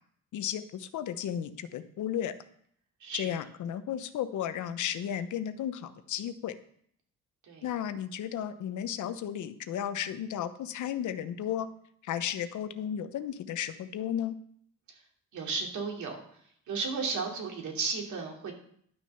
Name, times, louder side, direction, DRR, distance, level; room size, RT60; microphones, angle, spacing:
voice 1, 0.3-2.3 3.1-6.6 7.6-11.7 12.0-14.4, left 10 dB, 75° left, 11 dB, 0.9 m, -34 dB
voice 2, 15.3-16.2 16.7-18.5, right 4 dB, 75° right, 1 dB, 3.0 m, -33 dB
11.5 x 6.2 x 5.8 m, 0.64 s
cardioid pair, 90°, 30 cm